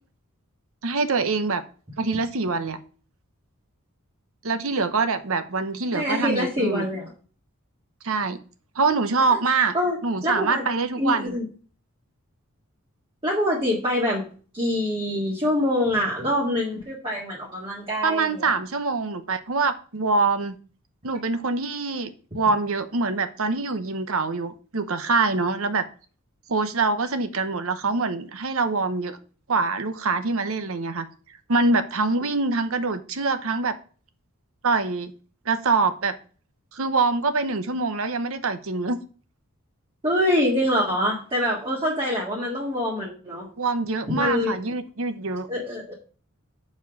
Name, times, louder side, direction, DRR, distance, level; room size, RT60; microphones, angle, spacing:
voice 1, 0.8-1.6 2.0-2.8 4.4-6.9 8.0-8.4 8.8-9.7 10.0-11.3 18.0-20.6 21.0-22.1 22.3-25.8 26.5-29.2 29.5-31.1 31.5-33.7 34.6-35.1 35.5-36.1 36.7-39.0 43.6-45.5, right 3 dB, 70° right, 10 dB, 0.9 m, -24 dB
voice 2, 5.9-7.1 9.7-10.0 10.2-10.6 11.0-11.5 13.2-14.3 14.5-18.5 40.0-43.5 44.1-44.6 45.5-45.9, left 1 dB, 25° right, -4 dB, 2.0 m, -25 dB
7.1 x 4.5 x 5.9 m, 0.40 s
head